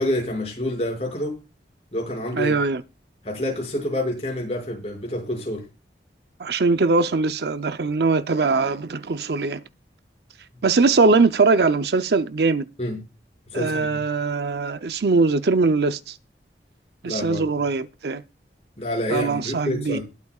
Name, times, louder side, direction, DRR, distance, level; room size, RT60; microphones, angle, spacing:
voice 1, 0.0-1.3 1.9-2.5 3.2-5.6 12.8-13.0 13.5-14.0 17.0-17.4 18.8-20.0, left 1 dB, 35° left, 6.0 m, -27 dB
voice 2, 2.3-2.8 6.4-9.6 10.6-12.7 13.5-16.1 17.0-18.2 19.1-20.0, right 3 dB, 70° right, 0.6 m, -21 dB
20.5 x 8.4 x 2.4 m
head